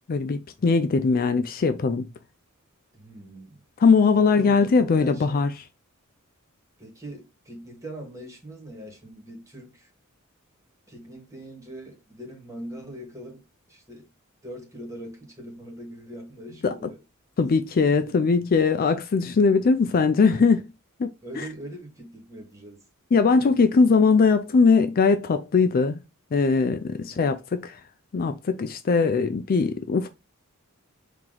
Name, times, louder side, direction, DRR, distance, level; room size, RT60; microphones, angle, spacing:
voice 1, 0.1-2.1 3.8-5.5 16.6-16.7 17.4-20.7 21.0-21.1 23.1-26.0 26.3-27.8 28.1-30.1, left 4 dB, 40° left, 0.4 m, -20 dB
voice 2, 2.9-3.6 4.1-5.4 6.8-9.9 10.9-14.1 14.4-17.0 18.1-18.2 21.2-22.8 27.0-27.3, right 1 dB, 15° right, 1.8 m, -41 dB
4.6 x 2.9 x 3.7 m
head